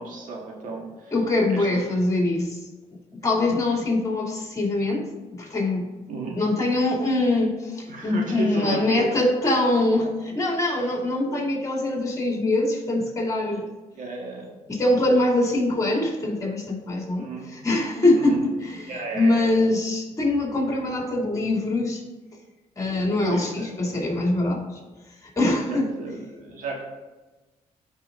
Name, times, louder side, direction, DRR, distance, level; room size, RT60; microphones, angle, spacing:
voice 1, 0.0-1.1 1.5-2.1 6.1-6.5 7.9-9.2 13.9-14.5 17.2-17.5 18.1-18.4 18.9-19.6 23.2-23.8 25.7-26.8, right 3 dB, 75° right, 0 dB, 1.7 m, -33 dB
voice 2, 1.1-2.6 3.2-5.9 6.3-13.6 14.7-22.0 22.8-24.8 25.4-25.9, left 2 dB, 25° left, -2 dB, 2.6 m, -23 dB
13.5 x 5.5 x 2.6 m, 1.2 s
cardioid pair, 85°, 14 cm